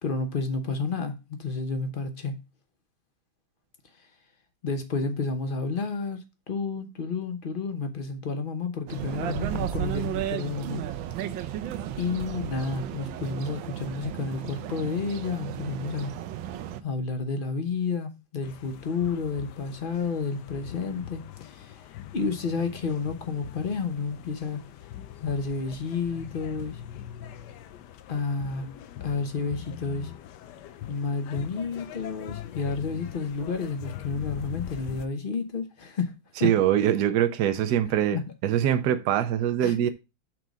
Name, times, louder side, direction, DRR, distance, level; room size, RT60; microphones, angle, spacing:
voice 1, 0.0-2.4 4.6-10.8 12.0-16.1 16.8-21.9 22.1-24.6 25.2-26.8 28.1-28.7 29.0-30.1 30.9-36.5 38.1-38.2 39.6-39.7, left 4 dB, 45° left, 0.7 m, -31 dB
sound 1, 8.9-16.8, right 11 dB, 90° right, 1.4 m, -34 dB
sound 2, 18.4-35.1, left 12 dB, 70° left, 1.1 m, -42 dB
voice 2, 36.4-39.9, right 10 dB, 65° right, 1.1 m, -23 dB
6.1 x 3.9 x 6.1 m
omnidirectional pair, 2.1 m